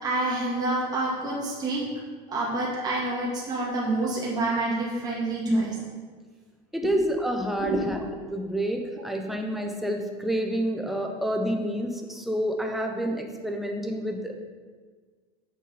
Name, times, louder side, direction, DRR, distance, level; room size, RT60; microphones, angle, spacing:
voice 1, 0.0-1.8 2.3-5.7 6.8-6.9 7.6-7.8, right 2 dB, 25° right, -5 dB, 2.1 m, -28 dB
voice 2, 6.7-8.0 8.3-14.3, right 1 dB, ahead, 3 dB, 0.8 m, -28 dB
6.8 x 6.3 x 5.1 m, 1.5 s
cardioid pair, 135°, 17 cm